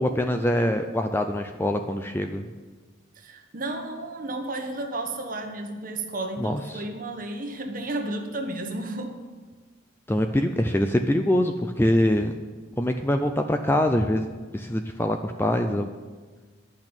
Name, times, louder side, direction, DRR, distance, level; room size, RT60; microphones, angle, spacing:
voice 1, 0.0-2.5 6.4-6.8 10.1-12.3 12.8-14.3 14.5-15.9, left 1 dB, 10° left, 6 dB, 0.4 m, -24 dB
voice 2, 3.1-9.2, right 2 dB, 40° right, 3 dB, 1.2 m, -32 dB
10.5 x 6.2 x 8.8 m, 1.4 s
head